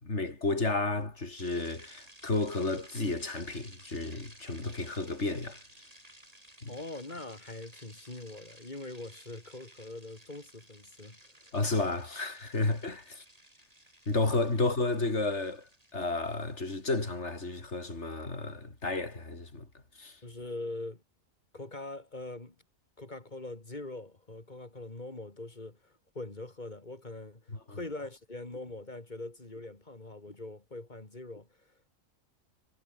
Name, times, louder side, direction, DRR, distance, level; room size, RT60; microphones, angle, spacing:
voice 1, 0.0-5.6 6.6-6.7 11.5-13.2 14.1-19.7 20.0-20.2 27.7-27.8, left 2 dB, 55° left, 4.5 m, -32 dB
sound 1, 1.4-17.7, right 1 dB, 25° right, 8.1 m, -56 dB
voice 2, 6.7-11.2 20.2-21.0 21.5-22.5 23.0-31.7, left 2 dB, 35° left, 3.2 m, -42 dB
omnidirectional pair, 1.4 m